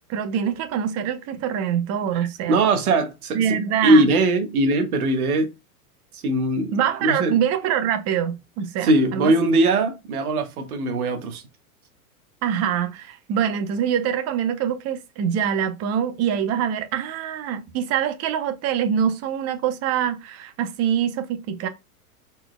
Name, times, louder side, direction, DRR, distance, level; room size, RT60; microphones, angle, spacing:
voice 1, 0.1-2.6 3.3-4.1 6.7-9.3 12.4-21.7, right 9 dB, 35° right, 0.8 m, -24 dB
voice 2, 2.1-5.5 6.1-6.7 7.0-7.4 8.8-11.4, right 2 dB, 70° right, 1.5 m, -21 dB
4.4 x 4.2 x 2.2 m
hypercardioid pair, 100°, 45 cm